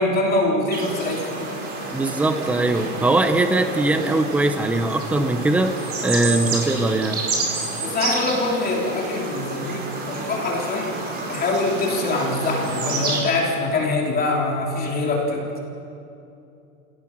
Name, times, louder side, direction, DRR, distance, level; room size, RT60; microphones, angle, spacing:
voice 1, 0.0-1.3 1.8-1.9 7.8-11.0 11.3-15.5, left 2 dB, 20° left, -1 dB, 3.3 m, -24 dB
sound 1, 0.7-13.2, right 3 dB, 20° right, 4.5 m, -29 dB
voice 2, 1.9-5.7 6.0-7.2, right 2 dB, 5° right, 8 dB, 0.7 m, -21 dB
27.0 x 18.0 x 6.0 m, 2.7 s
supercardioid pair, 145°, 45 cm